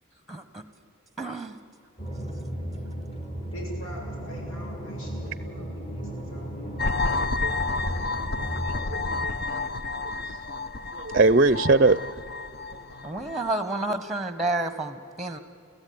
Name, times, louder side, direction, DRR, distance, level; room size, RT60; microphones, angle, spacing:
voice 1, 0.3-0.6 1.2-1.5 13.0-15.4, right 2 dB, ahead, 1.3 m, -30 dB
sound 1, 2.0-9.2, equal, 30° left, 2.8 m, -35 dB
voice 2, 3.5-6.9, right 1 dB, 80° left, 7.2 m, -42 dB
sound 2, 6.8-13.5, left 3 dB, 50° left, 0.9 m, -30 dB
voice 3, 8.4-9.3 9.9-10.4 10.9-12.0 12.7-12.8, right 3 dB, 40° right, 0.5 m, -23 dB
30.0 x 15.5 x 9.6 m
head